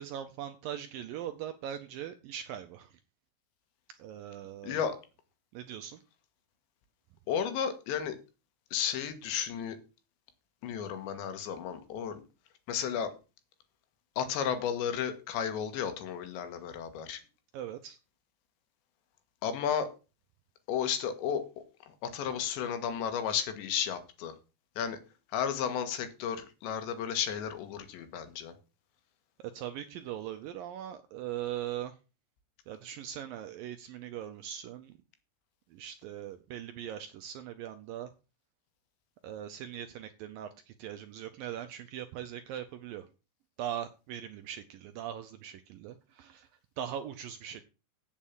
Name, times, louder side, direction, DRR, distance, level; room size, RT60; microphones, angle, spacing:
voice 1, 0.0-3.0 4.0-4.8 5.5-6.0 17.5-18.0 29.4-32.0 32.7-35.0 35.7-38.1 39.2-43.1 43.6-46.5 46.8-47.6, right 10 dB, 85° right, 8 dB, 2.0 m, -40 dB
voice 2, 4.6-5.0 7.3-8.2 8.7-9.8 10.6-12.2 12.7-13.1 14.2-17.2 19.4-19.9 20.7-21.5 21.9-24.4 24.8-25.0 25.3-28.5, left 8 dB, 85° left, 9 dB, 3.8 m, -33 dB
8.5 x 7.4 x 7.4 m, 0.32 s
omnidirectional pair, 5.0 m